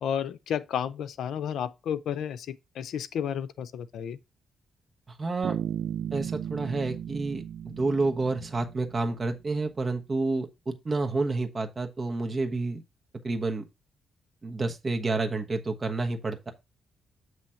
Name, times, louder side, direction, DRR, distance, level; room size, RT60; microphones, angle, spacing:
voice 1, 0.0-4.2, left 8 dB, 80° left, 0.5 m, -32 dB
voice 2, 5.1-5.6 6.1-12.8 13.2-13.7 14.4-16.5, right 3 dB, 30° right, 1.2 m, -29 dB
Bass guitar, 5.4-9.2, right 9 dB, 85° right, 0.4 m, -35 dB
7.5 x 3.2 x 5.6 m
cardioid pair, 100°, 0 cm